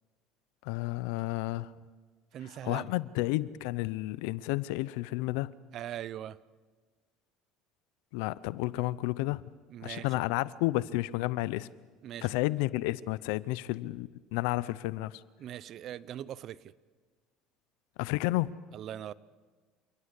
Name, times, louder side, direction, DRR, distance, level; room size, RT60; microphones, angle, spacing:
voice 1, 0.6-1.7 2.6-5.5 8.1-9.4 9.8-11.7 12.2-15.2 18.0-18.6, left 18 dB, 80° left, 19 dB, 0.6 m, -31 dB
voice 2, 2.3-2.9 5.7-6.4 9.7-10.1 12.0-12.3 15.4-16.7 18.7-19.1, right 11 dB, 50° right, 20 dB, 0.7 m, -40 dB
28.5 x 18.0 x 8.3 m, 1.4 s
supercardioid pair, 110°, 0 cm